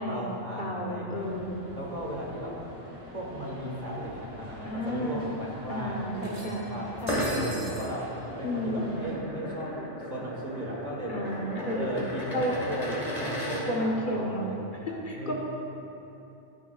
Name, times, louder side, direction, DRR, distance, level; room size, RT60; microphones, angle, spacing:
voice 1, 0.0-1.3 1.7-2.6 3.1-9.8 10.1-11.3 11.8-15.4, equal, 40° right, -3 dB, 1.6 m, -36 dB
voice 2, 0.6-1.6 4.6-5.2 5.7-6.7 7.0-7.6 8.4-9.0 11.1-11.9 12.3-12.5 13.7-14.5 14.8-15.4, equal, 50° left, -2 dB, 1.1 m, -32 dB
sound 1, 1.1-9.2, equal, 10° right, 1.9 m, -45 dB
sound 2, 6.2-7.9, right 2 dB, 55° right, 1.2 m, -43 dB
sound 3, 7.0-13.6, equal, 35° left, 1.9 m, -35 dB
13.5 x 9.7 x 2.4 m, 3.0 s
omnidirectional pair, 1.1 m